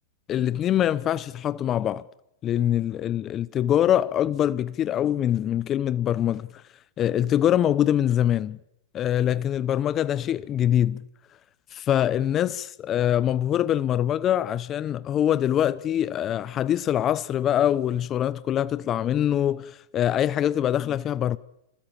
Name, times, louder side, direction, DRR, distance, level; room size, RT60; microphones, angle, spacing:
voice 1, 0.3-2.0 2.4-6.5 7.0-8.6 8.9-11.0 11.7-21.4, left 11 dB, 30° left, 0.9 m, -24 dB
27.0 x 19.0 x 8.9 m
hypercardioid pair, 130°, 0 cm